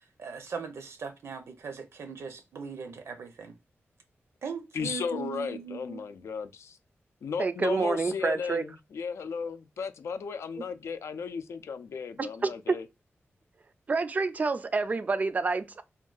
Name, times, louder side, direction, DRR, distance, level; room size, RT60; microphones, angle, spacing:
voice 1, 0.2-3.5 4.4-6.0, right 5 dB, 75° right, 0.6 m, -39 dB
voice 2, 4.7-6.8 7.2-12.9, left 5 dB, 85° left, 0.4 m, -35 dB
voice 3, 7.4-8.6 12.2-12.8 13.9-15.8, right 4 dB, 35° right, 0.3 m, -28 dB
3.5 x 2.3 x 2.2 m
wide cardioid pair, 130°, 5 cm